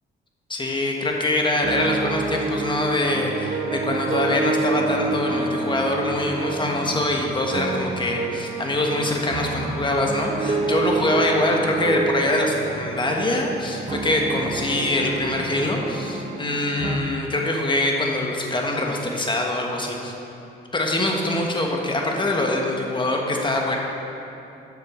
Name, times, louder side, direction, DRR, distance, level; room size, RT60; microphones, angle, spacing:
voice 1, 0.5-20.1 20.7-23.8, left 1 dB, 25° left, 0 dB, 1.5 m, -24 dB
sound 1, 1.6-17.0, right 3 dB, 30° right, 0.8 m, -28 dB
7.7 x 6.7 x 6.1 m, 2.9 s
cardioid pair, 90°, 20 cm